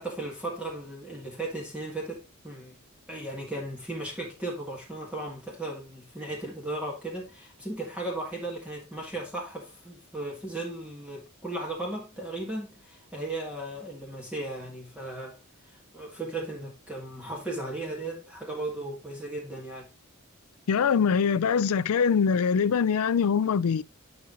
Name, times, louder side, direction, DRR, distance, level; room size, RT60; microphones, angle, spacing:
voice 1, 0.0-2.8 3.1-15.4 15.6-19.9, right 2 dB, 5° right, 1.7 m, -36 dB
voice 2, 20.7-23.8, left 6 dB, 80° left, 0.4 m, -23 dB
9.4 x 5.5 x 2.5 m
head